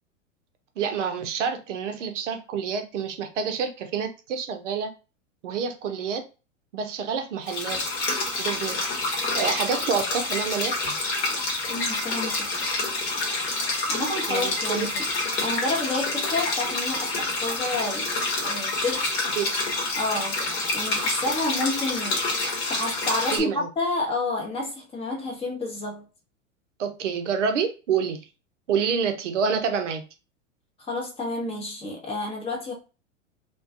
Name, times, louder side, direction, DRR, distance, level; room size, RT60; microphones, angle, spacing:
voice 1, 0.8-4.9 5.4-6.2 6.7-7.8 8.4-8.9 9.4-10.9 14.3-14.9 19.4-19.6 23.3-23.7 26.8-28.2 28.7-30.0, right 6 dB, 65° right, 0.6 m, -28 dB
sound 1, 7.5-23.4, left 2 dB, 50° left, 1.1 m, -28 dB
voice 2, 11.7-12.5 13.9-15.1 15.4-18.1 18.4-19.2 19.9-20.4 20.7-22.2 22.7-26.0 30.8-32.7, left 2 dB, 15° left, 0.6 m, -29 dB
2.5 x 2.2 x 2.3 m
figure-of-eight pair, 95°, 39 cm